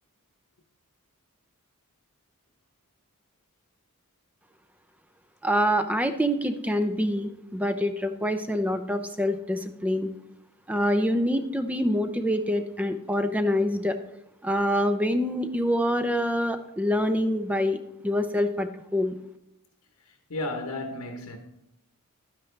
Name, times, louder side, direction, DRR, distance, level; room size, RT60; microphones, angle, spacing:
voice 1, 5.4-10.1 10.7-14.0 14.4-17.8 18.0-19.2, equal, 5° right, 0.5 m, -26 dB
voice 2, 20.3-21.4, left 2 dB, 85° left, 1.1 m, -33 dB
11.5 x 9.6 x 3.3 m
head